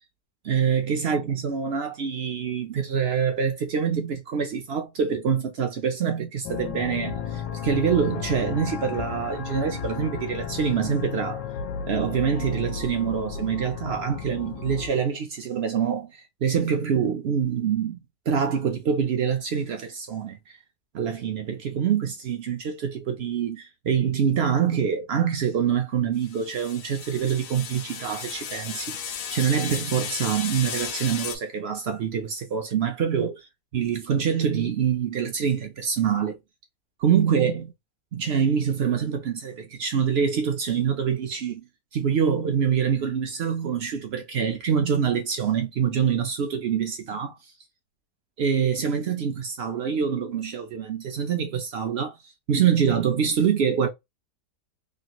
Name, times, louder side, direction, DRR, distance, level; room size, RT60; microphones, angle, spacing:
voice 1, 0.4-11.4 11.9-18.0 18.3-20.4 20.9-36.4 37.0-37.7 38.1-41.6 41.9-47.4 48.4-52.2 52.5-53.9, right 7 dB, 70° right, 0.6 m, -25 dB
sound 1, 6.4-14.9, left 6 dB, 85° left, 1.2 m, -33 dB
sound 2, 26.2-31.4, left 8 dB, 65° left, 0.9 m, -34 dB
3.2 x 2.5 x 2.9 m
omnidirectional pair, 1.8 m